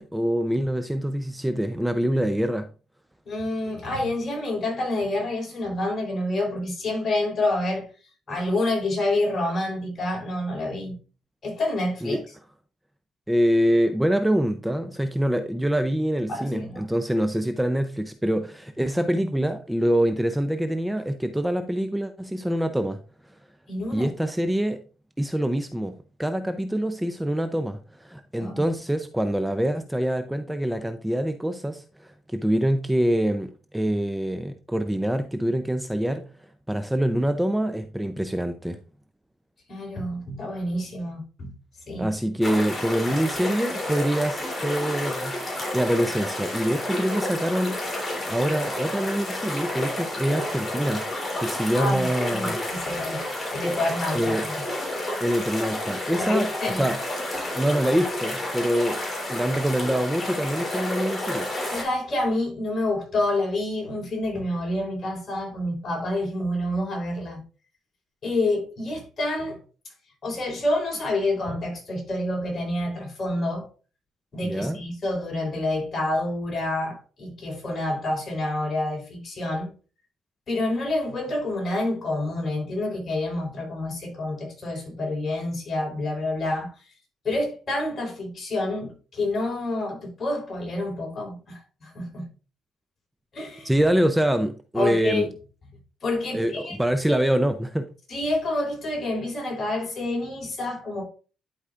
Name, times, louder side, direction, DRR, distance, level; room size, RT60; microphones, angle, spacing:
voice 1, 0.0-2.7 12.0-12.2 13.3-23.0 23.9-24.8 25.2-36.3 36.7-38.8 42.0-47.8 48.3-51.1 51.4-52.6 54.1-54.5 55.2-57.0 57.5-59.0 59.3-61.5 74.4-74.8 93.6-95.3 96.3-97.9, right 1 dB, 5° right, 0.6 m, -25 dB
voice 2, 3.3-7.9 8.3-11.0 11.4-12.2 16.3-16.8 23.7-24.1 28.4-28.6 39.7-41.5 41.9-42.1 43.1-43.2 51.7-54.5 56.2-56.8 61.7-67.4 68.2-69.6 70.2-73.7 74.3-79.7 80.5-86.7 87.2-92.3 93.3-93.7 94.8-95.3 96.0-96.8 97.1-97.2 98.1-101.0, left 2 dB, 45° left, 3.8 m, -28 dB
sound 1, 42.4-61.8, left 1 dB, 25° left, 3.2 m, -30 dB
11.0 x 4.8 x 2.5 m
cardioid pair, 90°, 0 cm